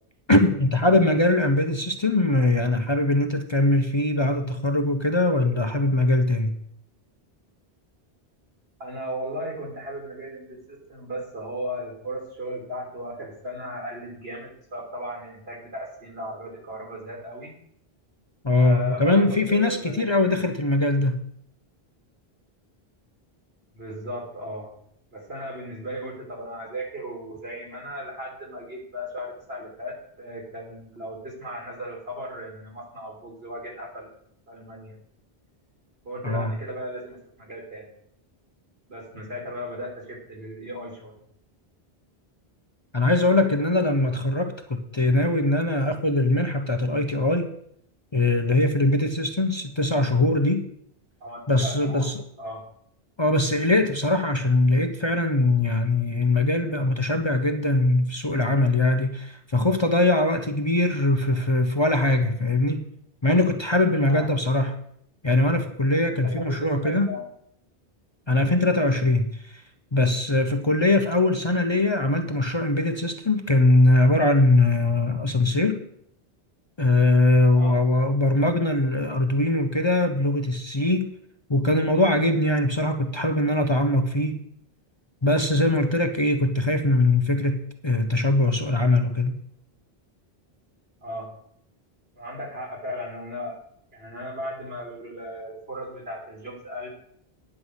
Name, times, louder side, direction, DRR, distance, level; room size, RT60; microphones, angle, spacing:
voice 1, 0.3-6.5 18.4-21.2 36.2-36.5 42.9-47.5 48.1-50.7 51.5-52.2 53.2-62.9 63.2-64.8 65.2-67.1 68.3-69.6 69.9-75.8 76.8-81.1 81.5-84.4 85.2-89.4, left 2 dB, 30° left, 6 dB, 0.7 m, -21 dB
voice 2, 8.8-17.5 18.6-20.4 23.7-24.7 25.1-34.1 34.5-35.0 36.0-37.9 38.9-41.2 51.2-52.1 52.4-52.6 64.0-64.3 66.1-67.3 77.6-77.8 91.0-91.3 92.2-93.6 93.9-96.9, equal, 75° right, -1 dB, 3.3 m, -36 dB
9.8 x 5.6 x 8.1 m, 0.69 s
omnidirectional pair, 1.0 m